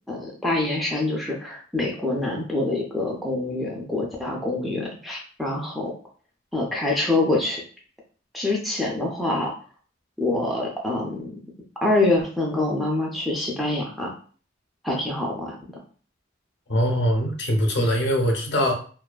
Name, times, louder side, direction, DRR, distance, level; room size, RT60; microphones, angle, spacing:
voice 1, 0.1-5.9 6.5-7.6 8.3-9.5 10.2-11.3 11.8-14.1 14.8-15.6, left 2 dB, ahead, -2 dB, 0.3 m, -25 dB
voice 2, 16.7-18.7, equal, 60° left, 1 dB, 0.6 m, -22 dB
2.4 x 2.2 x 2.2 m, 0.42 s
head